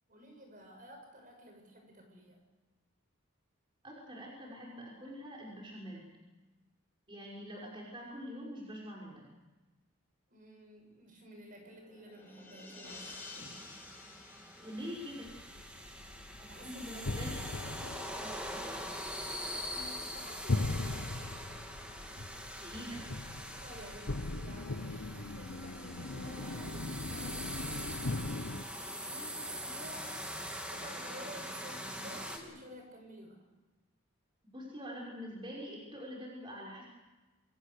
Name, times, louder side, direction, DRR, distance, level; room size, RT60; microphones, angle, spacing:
voice 1, 0.1-2.4 10.3-13.6 15.5-16.1 16.5-17.4 19.7-21.1 23.6-30.3 30.7-33.4, equal, 40° right, 3 dB, 6.6 m, -52 dB
voice 2, 3.8-6.1 7.1-9.3 14.6-15.3 16.4-17.3 17.9-18.9 22.6-23.0 34.5-36.9, equal, 25° right, -2 dB, 5.7 m, -45 dB
sound 1, 11.5-16.0, left 3 dB, 10° left, 6.1 m, -52 dB
sound 2, 12.8-32.4, equal, 5° right, 3.0 m, -43 dB
sound 3, 15.3-28.6, left 2 dB, 70° left, 1.0 m, -40 dB
29.0 x 23.5 x 6.8 m, 1.1 s
head